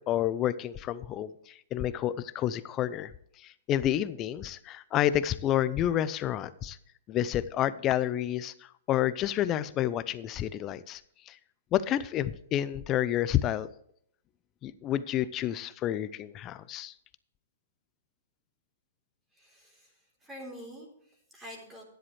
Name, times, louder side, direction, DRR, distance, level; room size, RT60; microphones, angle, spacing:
voice 1, 0.1-3.1 3.7-6.8 7.1-8.5 8.9-11.0 11.3-11.4 11.7-13.7 14.6-16.9, left 12 dB, 30° left, 16 dB, 0.6 m, -29 dB
voice 2, 19.3-21.8, equal, 15° right, -2 dB, 3.7 m, -47 dB
12.5 x 10.5 x 3.3 m, 0.68 s
hypercardioid pair, 125°, 0 cm